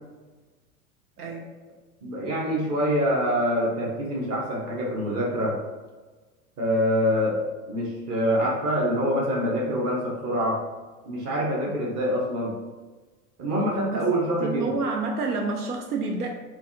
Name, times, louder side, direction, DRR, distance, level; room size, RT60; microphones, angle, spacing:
voice 1, 2.0-5.5 6.6-7.4 7.7-10.6 11.0-12.5 13.4-14.6, equal, 35° right, -3 dB, 1.1 m, -25 dB
voice 2, 14.4-16.3, right 4 dB, 85° right, 2 dB, 0.5 m, -28 dB
3.8 x 2.5 x 2.8 m, 1.3 s
figure-of-eight pair, 85°, 45 cm